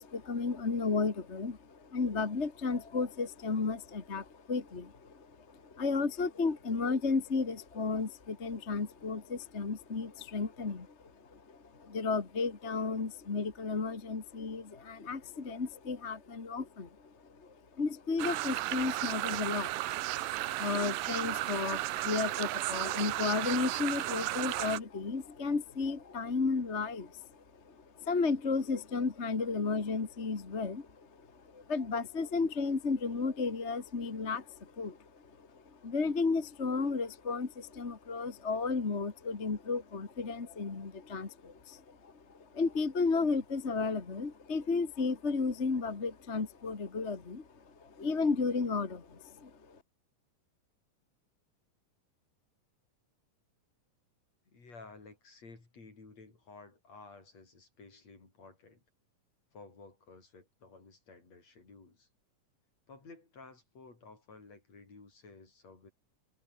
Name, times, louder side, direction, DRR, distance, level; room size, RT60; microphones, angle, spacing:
voice 1, 0.0-49.8, left 4 dB, 25° left, 1.7 m, -34 dB
sound 1, 18.2-24.8, right 16 dB, 85° right, 2.6 m, -34 dB
voice 2, 54.5-58.8 59.5-62.1 62.9-65.9, left 3 dB, 50° left, 7.6 m, -54 dB
omnidirectional pair, 3.8 m